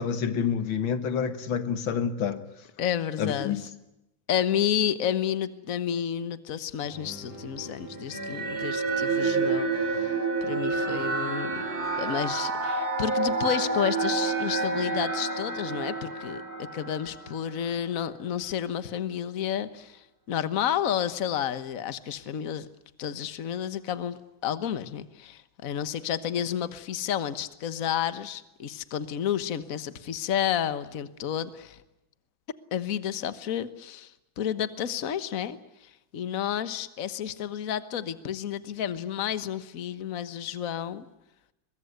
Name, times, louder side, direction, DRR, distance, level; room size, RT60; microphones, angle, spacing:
voice 1, 0.0-2.4 3.2-3.6, left 7 dB, 90° left, 2.3 m, -28 dB
voice 2, 2.8-3.6 4.3-9.7 10.0-10.1 10.4-11.5 12.0-22.7 23.0-31.8 32.7-34.1 34.4-41.1, left 9 dB, 50° left, 1.5 m, -31 dB
sound 1, 6.8-12.4, equal, 25° left, 5.9 m, -44 dB
sound 2, 8.1-17.6, right 3 dB, 50° right, 3.3 m, -29 dB
23.0 x 22.0 x 9.6 m
omnidirectional pair, 2.1 m